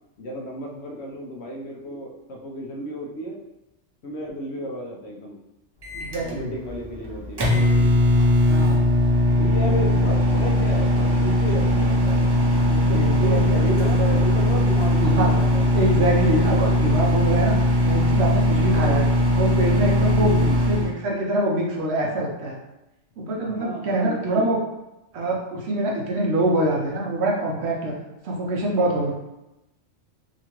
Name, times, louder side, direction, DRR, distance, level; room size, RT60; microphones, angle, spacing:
voice 1, 0.2-3.4 4.0-5.4 6.2-7.9 9.4-12.3 13.2-15.6 18.7-19.1 20.2-20.6 23.4-24.6, equal, 65° left, 0 dB, 0.8 m, -33 dB
Microwave oven, 5.8-20.9, left 1 dB, 40° right, 0.3 m, -20 dB
voice 2, 5.9-6.5 8.5-8.9 12.6-14.2 15.2-15.3 15.7-19.1 19.4-22.6 23.2-24.6 25.1-27.9 28.2-29.1, right 1 dB, 65° right, -1 dB, 0.8 m, -24 dB
2.8 x 2.4 x 2.9 m, 0.94 s
omnidirectional pair, 1.3 m